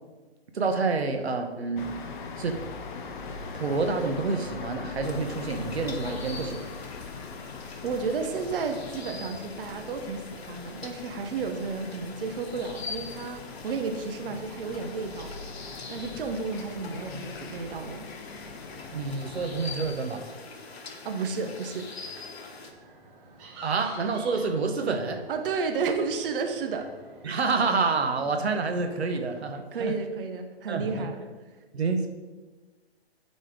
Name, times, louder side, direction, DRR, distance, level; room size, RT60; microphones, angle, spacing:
voice 1, 0.5-1.9 2.4-2.6 3.5-6.6 18.9-20.3 23.6-25.2 27.2-30.0 30.7-31.1 31.7-32.1, right 4 dB, 85° right, 5 dB, 1.0 m, -28 dB
sound 1, 1.8-19.9, left 4 dB, 50° left, 0.9 m, -41 dB
sound 2, 5.0-22.7, left 4 dB, 75° left, 1.3 m, -44 dB
voice 2, 7.8-15.3 15.9-18.0 21.0-21.9 25.3-26.9 29.7-31.2, right 4 dB, 60° right, 5 dB, 0.9 m, -32 dB
sound 3, 18.4-29.5, right 2 dB, 25° right, 1.3 m, -50 dB
9.0 x 4.3 x 5.0 m, 1.3 s
hypercardioid pair, 135°, 31 cm